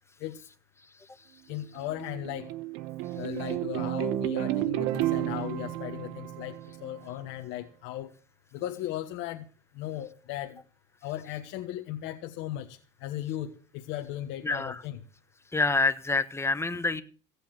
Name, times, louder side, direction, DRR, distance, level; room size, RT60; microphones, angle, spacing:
voice 1, 1.5-2.5 3.1-8.1 8.5-9.5 9.7-10.6 11.0-15.0, left 13 dB, 65° left, 4 dB, 1.3 m, -37 dB
sound 1, 1.5-7.1, right 16 dB, 70° right, 1.1 m, -32 dB
voice 2, 14.4-14.7 15.5-17.0, left 3 dB, 10° left, 12 dB, 1.3 m, -26 dB
16.5 x 8.7 x 6.0 m, 0.39 s
supercardioid pair, 100°, 21 cm